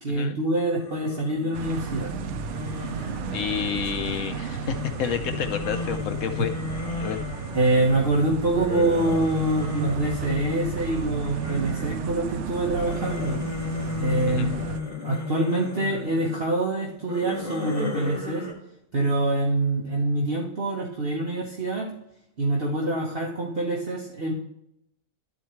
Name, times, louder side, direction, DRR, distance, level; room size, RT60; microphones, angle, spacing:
voice 1, 0.0-2.1 7.5-13.4 14.0-14.6 15.0-18.5 18.9-21.9 22.4-24.3, right 2 dB, 45° right, -2 dB, 1.3 m, -25 dB
sound 1, 0.6-4.0 4.6-12.1 12.5-16.4 17.0-18.5, left 4 dB, 40° left, 2.7 m, -34 dB
sound 2, 1.5-14.8, right 6 dB, 65° right, 0.8 m, -33 dB
voice 2, 3.3-6.5 7.0-7.2 14.3-14.5, left 8 dB, 70° left, 8 dB, 0.9 m, -30 dB
12.0 x 4.5 x 3.1 m, 0.78 s
omnidirectional pair, 1.4 m